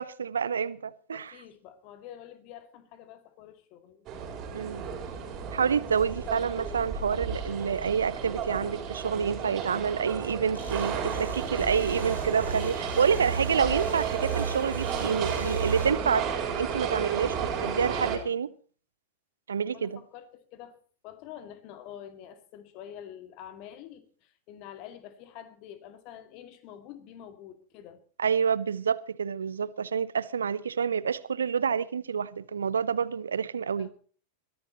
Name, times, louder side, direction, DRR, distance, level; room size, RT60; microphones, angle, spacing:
voice 1, 0.0-1.4 4.5-4.8 5.5-16.3 16.6-18.5 19.5-20.0 28.2-33.9, right 7 dB, 70° right, 0.7 m, -28 dB
voice 2, 1.1-4.1 19.7-20.8 21.0-28.0 33.5-33.9, left 10 dB, 40° left, 2.3 m, -47 dB
sound 1, 4.1-18.2, right 7 dB, 35° right, 4.2 m, -33 dB
sound 2, 10.5-15.9, right 4 dB, 85° left, 6.8 m, -36 dB
22.0 x 14.5 x 3.0 m
figure-of-eight pair, 90°, 0 cm